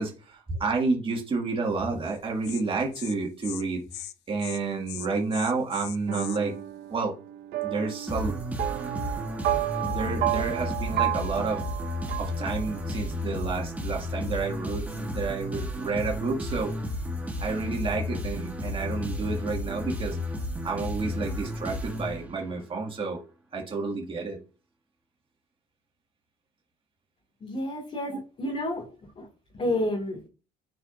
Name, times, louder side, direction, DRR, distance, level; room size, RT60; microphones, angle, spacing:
voice 1, 0.0-6.5 6.9-7.1 7.6-8.4 9.8-11.6 12.2-16.7 17.4-20.2 20.6-23.2 23.5-24.4, right 3 dB, 30° right, 1.9 m, -30 dB
Insect, 2.1-2.2 2.4-2.6 2.9-3.1 3.4-3.6 3.9-4.1 4.4-4.6 4.9-6.4, left 15 dB, 80° left, 0.5 m, -39 dB
sound 1, 6.1-13.1, right 14 dB, 75° right, 0.6 m, -32 dB
sound 2, 8.1-22.7, left 1 dB, 10° right, 1.2 m, -33 dB
voice 2, 27.4-29.3 29.5-30.2, left 1 dB, 35° left, 2.1 m, -30 dB
8.0 x 4.5 x 2.6 m
cardioid pair, 110°, 17 cm